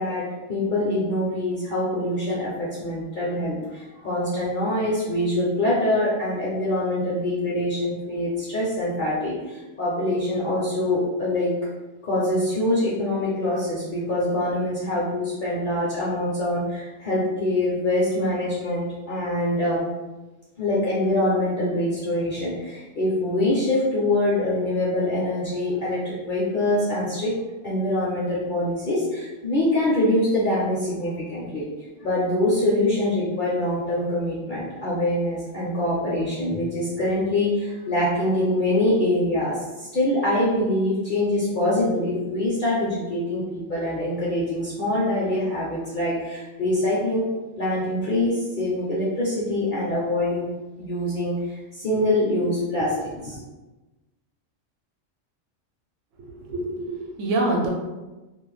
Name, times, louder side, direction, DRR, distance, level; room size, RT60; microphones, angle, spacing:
voice 1, 0.0-11.5 12.0-19.8 20.6-27.3 27.6-31.6 32.0-47.3 47.6-50.5 50.8-53.4, left 1 dB, 55° left, -7 dB, 0.6 m, -24 dB
voice 2, 56.2-57.7, right 2 dB, 75° right, 0 dB, 0.9 m, -26 dB
2.4 x 2.0 x 3.1 m, 1.1 s
omnidirectional pair, 1.3 m